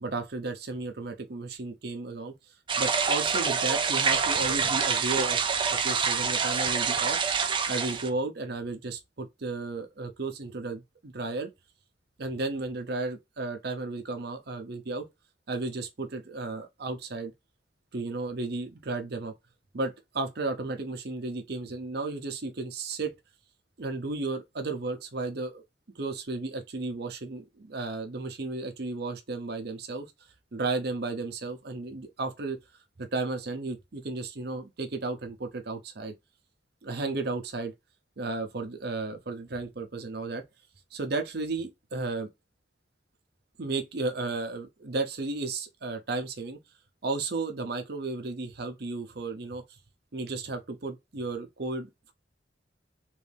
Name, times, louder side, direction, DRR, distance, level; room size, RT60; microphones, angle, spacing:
voice 1, 0.0-2.3 2.8-7.2 7.7-11.5 12.2-15.1 15.5-17.3 17.9-19.3 19.7-23.1 23.8-25.6 25.9-30.1 30.5-32.6 33.0-36.1 36.8-37.7 38.2-40.4 40.9-42.3 43.6-46.6 47.0-49.8 50.1-52.1, right 3 dB, 60° right, 0.7 m, -34 dB
sound 1, 2.7-8.1, right 6 dB, 30° right, 0.4 m, -26 dB
3.1 x 2.7 x 3.3 m
head